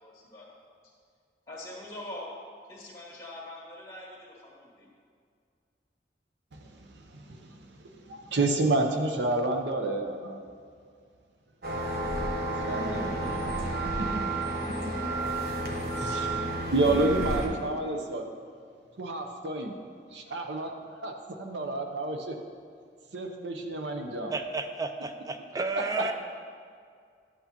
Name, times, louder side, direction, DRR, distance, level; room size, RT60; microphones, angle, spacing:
voice 1, 0.0-0.5 1.5-2.3 2.7-4.9, left 1 dB, 20° left, -4 dB, 1.9 m, -43 dB
voice 2, 6.5-10.4 12.7-13.6 13.8-14.2 15.0-15.1 15.6-18.2 19.0-19.8 20.1-20.7 21.0-22.4 23.1-24.3 26.0-26.1, right 2 dB, 80° right, 4 dB, 0.7 m, -30 dB
sound 1, 11.6-17.5, right 2 dB, 55° right, 1.0 m, -31 dB
voice 3, 24.3-26.1, right 3 dB, 20° right, 7 dB, 0.4 m, -32 dB
11.0 x 8.0 x 2.9 m, 2.2 s
head